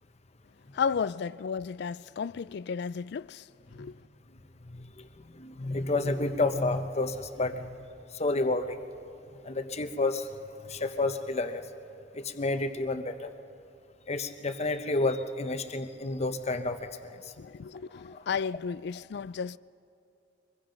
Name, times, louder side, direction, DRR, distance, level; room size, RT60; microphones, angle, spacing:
voice 1, 0.7-4.1 17.4-19.6, left 6 dB, 65° left, 0.4 m, -33 dB
voice 2, 4.6-8.8 9.4-10.3 10.7-11.7 12.1-13.3 14.1-17.3 18.0-18.2, left 2 dB, 35° left, 1.0 m, -31 dB
24.5 x 21.5 x 5.2 m
head